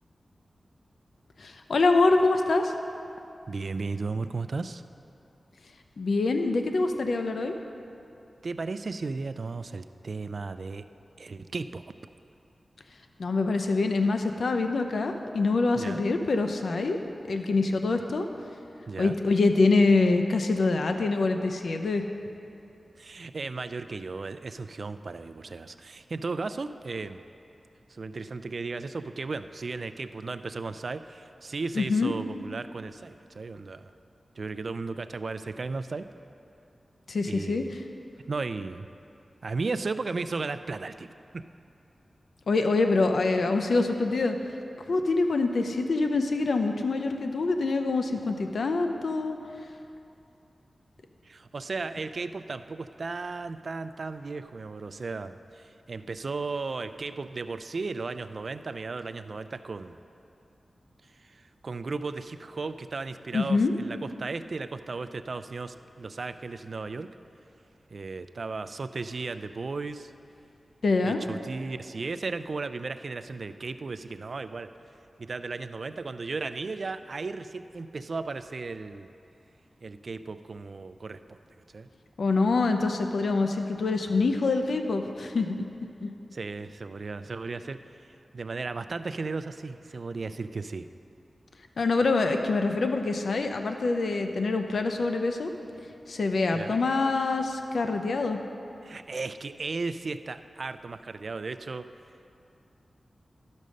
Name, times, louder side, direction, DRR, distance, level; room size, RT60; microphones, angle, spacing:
voice 1, 1.4-2.7 6.0-7.5 13.2-17.0 17.3-18.3 19.0-22.1 31.7-32.1 37.1-37.8 42.5-44.4 44.9-49.4 63.3-63.7 70.8-71.2 82.2-85.6 86.0-86.1 91.8-95.5 96.1-98.4, left 3 dB, 80° left, 6 dB, 0.6 m, -25 dB
voice 2, 3.5-4.8 8.4-10.8 11.2-11.9 15.7-16.0 18.9-19.2 23.0-27.2 27.9-33.9 34.4-36.1 37.2-37.7 38.3-38.9 39.4-41.4 51.2-60.0 61.0-67.1 67.9-70.1 71.0-74.7 75.2-79.1 79.8-81.4 81.7-81.9 86.3-90.9 96.5-96.8 98.8-101.9, right 3 dB, 65° right, 11 dB, 0.4 m, -35 dB
12.0 x 5.3 x 6.4 m, 2.6 s
cardioid pair, 60°, 0 cm